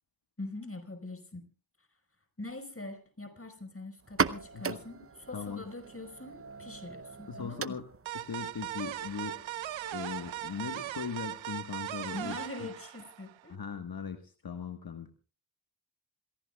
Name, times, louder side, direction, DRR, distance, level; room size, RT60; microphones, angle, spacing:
voice 1, 0.4-1.5 1.8-1.9 2.4-7.8 12.1-13.6, left 2 dB, 25° left, 7 dB, 4.9 m, -43 dB
sound 1, 4.0-11.5, right 5 dB, 30° right, 0.8 m, -39 dB
voice 2, 5.3-5.6 7.3-7.9 8.1-9.4 9.9-12.4 13.5-15.1, left 6 dB, 45° left, 8 dB, 1.5 m, -39 dB
sound 2, 8.1-13.5, right 13 dB, 65° right, 0.7 m, -39 dB
27.0 x 17.0 x 2.3 m, 0.36 s
supercardioid pair, 40°, 49 cm